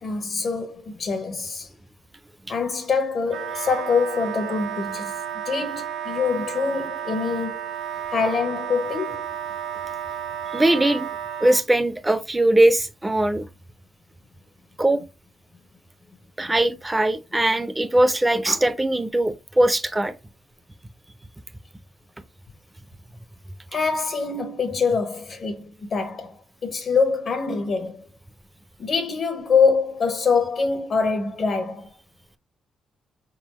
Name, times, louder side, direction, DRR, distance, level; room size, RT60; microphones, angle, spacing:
voice 1, 0.0-1.7 2.5-7.6 8.1-9.3 16.4-16.5 23.7-28.1 28.8-31.9, left 5 dB, 45° left, 0.6 m, -24 dB
Wind instrument woodwind instrument, 3.3-11.6, right 9 dB, 70° right, 0.4 m, -32 dB
voice 2, 10.5-11.1 11.4-13.4 14.8-15.0 16.4-20.1, right 1 dB, 10° right, 0.5 m, -20 dB
4.4 x 3.7 x 3.0 m
cardioid pair, 125°, 0 cm